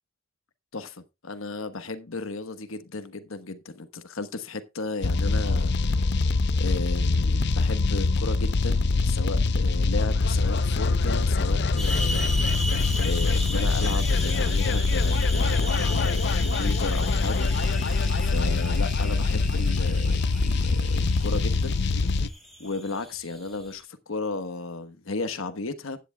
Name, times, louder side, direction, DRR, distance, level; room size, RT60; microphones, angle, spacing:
voice 1, 0.7-6.0 6.6-12.4 13.0-17.5 18.2-21.8 22.6-26.0, left 3 dB, 90° left, 1.2 m, -34 dB
sound 1, 5.0-22.3, left 3 dB, 55° left, 0.6 m, -24 dB
sound 2, 11.8-23.8, equal, ahead, 3.0 m, -36 dB
sound 3, 14.6-14.7 15.1-15.2 15.5-16.0 16.3-16.4 16.6-16.7 17.0-17.2 17.5-17.6 18.0-18.3 18.6-18.7, left 8 dB, 20° left, 3.6 m, -48 dB
15.0 x 9.9 x 2.3 m
head